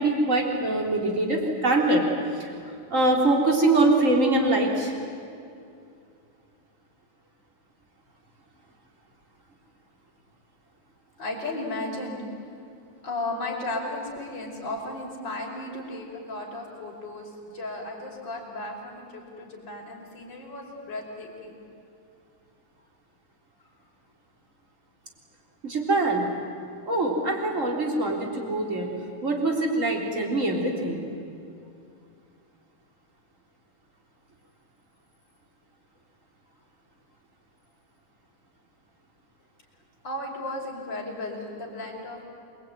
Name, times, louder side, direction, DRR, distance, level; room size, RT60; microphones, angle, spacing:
voice 1, 0.0-2.0 2.4-2.5 2.9-4.9 25.6-26.2 26.9-28.9 29.2-31.0, right 2 dB, 25° right, 1 dB, 3.7 m, -23 dB
voice 2, 11.2-12.2 13.0-21.5 40.0-42.2, left 2 dB, 35° left, -2 dB, 5.8 m, -35 dB
28.0 x 22.0 x 9.5 m, 2.5 s
omnidirectional pair, 3.6 m